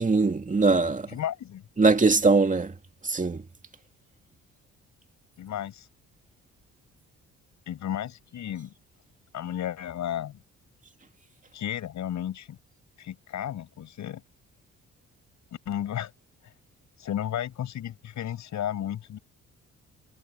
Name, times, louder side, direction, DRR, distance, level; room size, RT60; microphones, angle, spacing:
voice 1, 0.0-1.0 1.8-2.7 3.1-3.4, right 3 dB, 25° right, 2.4 m, -21 dB
voice 2, 1.1-1.6 5.4-5.9 7.7-8.7 9.3-10.4 11.5-12.6 13.0-14.2 15.6-16.1 16.4-16.5 17.0-19.2, left 10 dB, 70° left, 6.8 m, -33 dB
cardioid pair, 90°, 30 cm